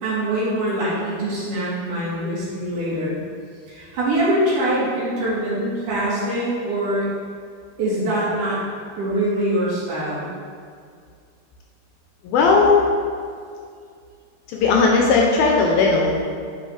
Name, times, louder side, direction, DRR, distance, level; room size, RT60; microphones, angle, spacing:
voice 1, 0.0-3.2 3.7-7.1 7.8-8.6 9.0-10.3, right 1 dB, 60° right, -8 dB, 2.6 m, -23 dB
voice 2, 12.2-12.9 14.5-16.2, left 4 dB, 80° left, -1 dB, 2.3 m, -17 dB
8.8 x 4.6 x 3.2 m, 2.2 s
omnidirectional pair, 4.6 m